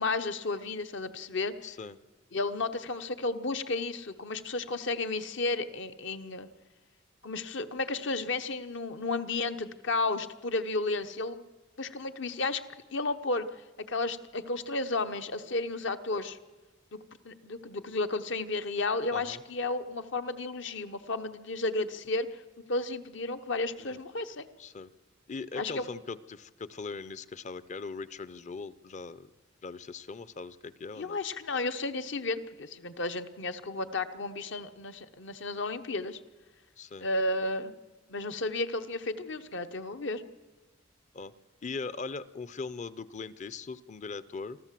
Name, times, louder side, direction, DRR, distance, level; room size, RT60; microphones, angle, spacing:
voice 1, 0.0-1.5 2.3-6.5 7.2-11.4 11.8-12.6 12.9-13.5 13.9-16.4 16.9-22.4 22.7-24.5 25.6-25.9 31.0-36.2 37.0-37.7 38.1-40.2, left 3 dB, 65° left, 9 dB, 1.0 m, -33 dB
voice 2, 1.6-2.0 19.1-19.4 23.8-24.0 24.6-24.9 25.3-29.3 29.6-31.2 36.8-37.1 41.1-41.3 41.6-44.6, left 4 dB, 40° left, 17 dB, 0.6 m, -40 dB
25.0 x 14.0 x 7.6 m, 1.2 s
head